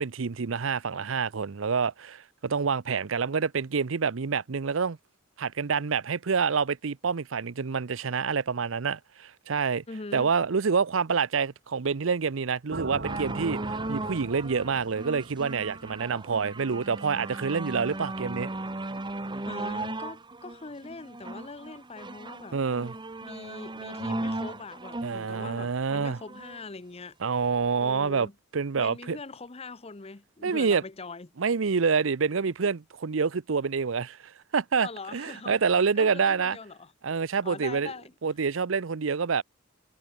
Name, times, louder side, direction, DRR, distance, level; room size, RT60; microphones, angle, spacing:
voice 1, 0.0-5.0 5.4-9.8 10.1-18.5 22.5-22.9 25.0-26.2 27.2-28.3 28.5-29.2 30.4-30.8 31.4-36.6 37.0-37.9 38.2-39.4, right 5 dB, 85° right, 0.7 m, -27 dB
voice 2, 9.9-10.3 19.5-22.6 23.2-27.1 27.8-28.3 28.7-31.3 34.8-36.9 37.4-38.1, left 3 dB, 30° left, 0.9 m, -42 dB
sound 1, 12.7-16.8, right 2 dB, 60° right, 2.5 m, -41 dB
sound 2, 13.0-26.6 27.4-27.5, right 2 dB, 25° right, 1.3 m, -37 dB
head